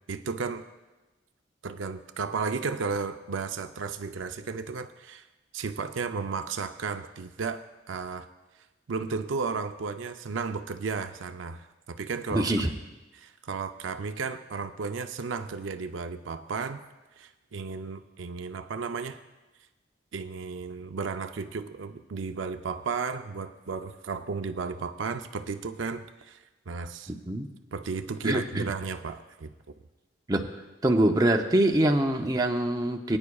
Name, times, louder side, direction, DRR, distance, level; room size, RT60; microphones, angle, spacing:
voice 1, 0.1-0.6 1.6-5.2 5.5-8.3 8.9-12.5 13.1-16.8 17.2-19.2 20.1-26.4 26.7-27.1 27.7-29.5, right 5 dB, 75° right, 8 dB, 0.5 m, -34 dB
voice 2, 12.3-12.7 27.1-27.5 28.2-28.7 30.3-30.4 30.8-33.2, right 1 dB, 20° right, 3 dB, 0.6 m, -24 dB
21.0 x 9.6 x 2.3 m, 1.1 s
head